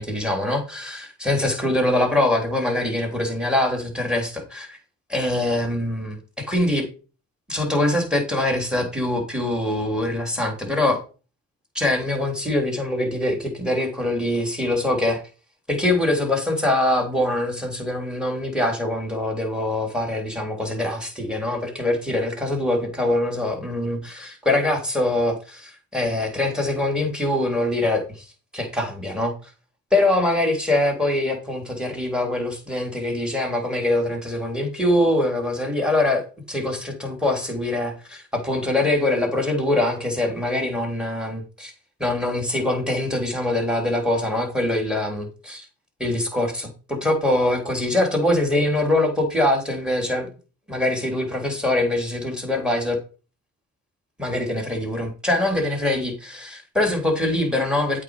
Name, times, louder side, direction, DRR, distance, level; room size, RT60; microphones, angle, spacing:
voice 1, 0.0-4.8 5.1-6.9 7.5-11.0 11.7-15.2 15.7-29.5 29.9-41.7 42.0-45.7 46.0-50.3 50.7-53.0 54.2-58.0, left 1 dB, 5° right, 3.2 m, -23 dB
8.3 x 4.3 x 4.8 m
supercardioid pair, 55°, 34 cm